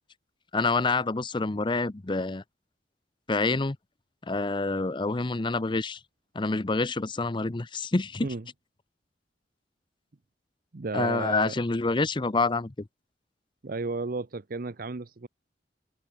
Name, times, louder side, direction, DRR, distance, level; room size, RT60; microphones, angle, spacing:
voice 1, 0.5-2.4 3.3-3.8 4.3-6.0 6.3-8.3 10.9-12.9, left 3 dB, 25° left, 0.7 m, -27 dB
voice 2, 10.7-11.5 13.6-15.3, right 3 dB, 55° right, 0.7 m, -33 dB
head